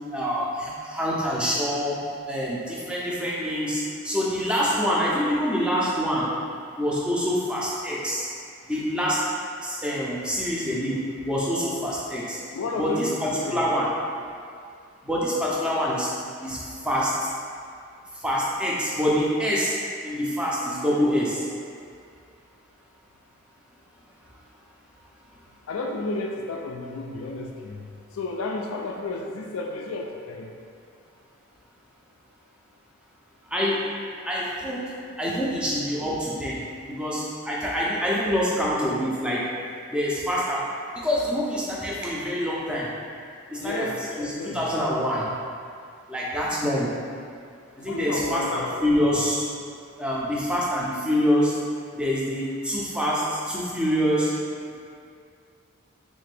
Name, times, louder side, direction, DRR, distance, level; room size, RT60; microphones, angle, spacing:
voice 1, 0.1-2.0 2.2-6.3 6.8-8.3 8.7-9.2 9.6-12.4 12.8-13.9 15.0-16.1 16.4-17.3 18.1-19.7 20.0-21.5 33.5-33.9 34.3-39.4 39.9-40.6 40.9-42.9 43.5-45.3 46.1-46.9 47.8-49.5 50.0-51.6 51.9-54.3, equal, 5° right, -6 dB, 0.4 m, -26 dB
voice 2, 12.5-13.6 25.7-27.9 28.1-30.5 43.6-44.6 47.8-49.1, left 2 dB, 70° left, 1 dB, 0.3 m, -32 dB
3.6 x 2.5 x 3.3 m, 2.3 s
head